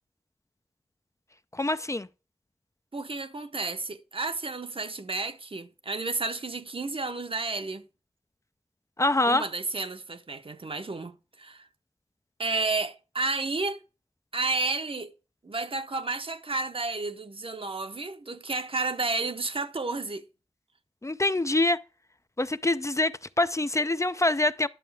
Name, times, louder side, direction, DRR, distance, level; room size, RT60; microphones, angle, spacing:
voice 1, 1.5-2.1 9.0-9.4 21.0-21.8 22.4-24.7, left 2 dB, 30° left, 0.4 m, -25 dB
voice 2, 2.9-7.9 9.2-11.7 12.4-13.8 14.3-15.1 15.4-20.2, right 3 dB, 60° right, 0.8 m, -31 dB
11.0 x 6.4 x 3.4 m
wide cardioid pair, 60°, 11 cm